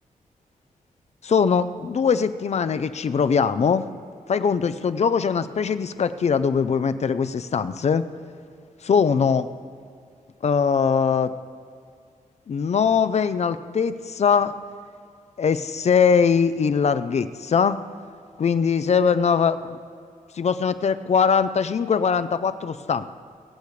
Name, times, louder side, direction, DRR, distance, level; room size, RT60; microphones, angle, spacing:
voice 1, 1.2-3.8 4.3-8.0 8.8-9.5 10.4-11.3 12.5-14.5 15.4-17.8 18.4-19.6 20.3-23.1, left 6 dB, 55° left, 12 dB, 0.6 m, -21 dB
23.5 x 8.6 x 3.3 m, 2.3 s
wide cardioid pair, 105°, 14 cm